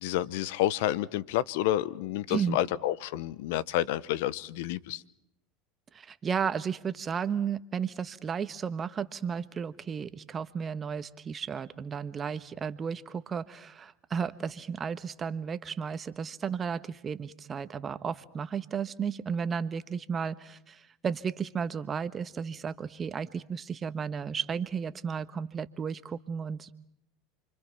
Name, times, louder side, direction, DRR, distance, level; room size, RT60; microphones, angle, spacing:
voice 1, 0.0-5.0, left 13 dB, 70° left, 0.9 m, -29 dB
voice 2, 5.9-26.7, right 6 dB, 30° right, 1.3 m, -33 dB
29.0 x 25.0 x 5.9 m
hypercardioid pair, 90°, 0 cm